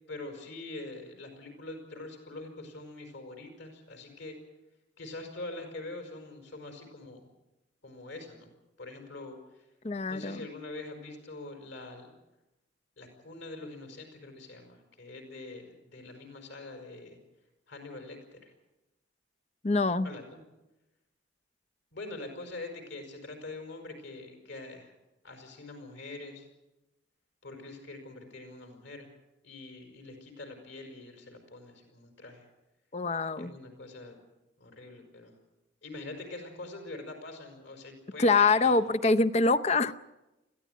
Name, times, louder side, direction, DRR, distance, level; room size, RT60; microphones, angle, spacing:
voice 1, 0.1-4.4 5.0-7.3 7.8-8.5 8.8-9.7 10.1-12.2 13.0-17.2 17.7-18.5 20.0-20.4 21.9-24.9 25.2-26.5 27.4-29.1 29.4-32.5 33.4-34.2 34.6-35.3 35.8-38.8, left 2 dB, 65° left, 4 dB, 5.1 m, -44 dB
voice 2, 9.8-10.4 19.6-20.1 32.9-33.5 38.2-39.9, left 3 dB, 35° left, 12 dB, 0.6 m, -24 dB
21.0 x 15.5 x 9.4 m, 0.99 s
head